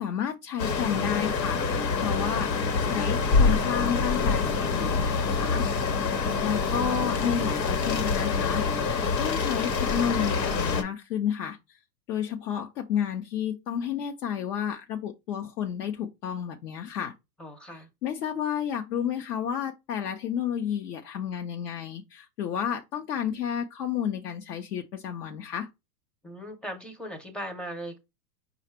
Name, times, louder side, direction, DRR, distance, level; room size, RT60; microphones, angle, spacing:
voice 1, 0.0-2.5 2.8-5.6 6.4-8.6 9.2-11.8 12.1-17.1 17.7-25.7, left 8 dB, 70° left, 0.9 m, -31 dB
sound 1, 0.6-10.8, left 4 dB, 85° left, 1.3 m, -26 dB
voice 2, 6.1-6.6 17.4-17.9 26.2-28.0, equal, ahead, 0.5 m, -39 dB
5.0 x 2.4 x 4.3 m
hypercardioid pair, 125°, 49 cm